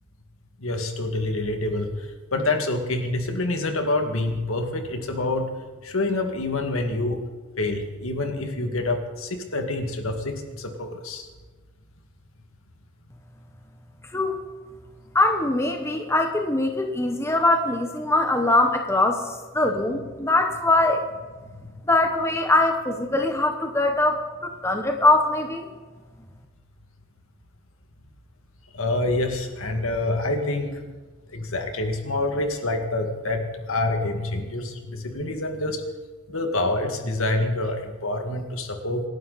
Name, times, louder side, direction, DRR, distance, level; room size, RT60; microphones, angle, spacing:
voice 1, 0.6-1.9 2.3-5.5 5.8-7.2 7.6-11.3 19.9-20.0 28.7-30.8 31.3-35.8 36.3-39.0, left 2 dB, 75° left, 4 dB, 2.1 m, -27 dB
voice 2, 14.1-14.4 15.1-21.0 21.9-25.6, left 2 dB, 10° left, 4 dB, 1.1 m, -22 dB
27.0 x 11.5 x 4.1 m, 1.4 s
head